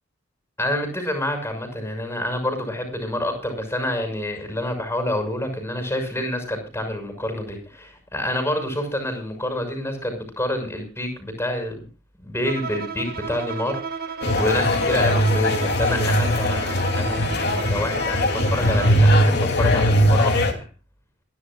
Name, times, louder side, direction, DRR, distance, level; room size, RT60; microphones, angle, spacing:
voice 1, 0.6-11.8 12.2-13.8 14.1-20.7, left 1 dB, 10° left, 5 dB, 6.3 m, -28 dB
Bowed string instrument, 12.4-19.1, right 5 dB, 45° right, 1.9 m, -33 dB
sound 1, 14.2-20.5, equal, 55° left, 3.1 m, -20 dB
27.0 x 11.5 x 2.4 m, 0.34 s
head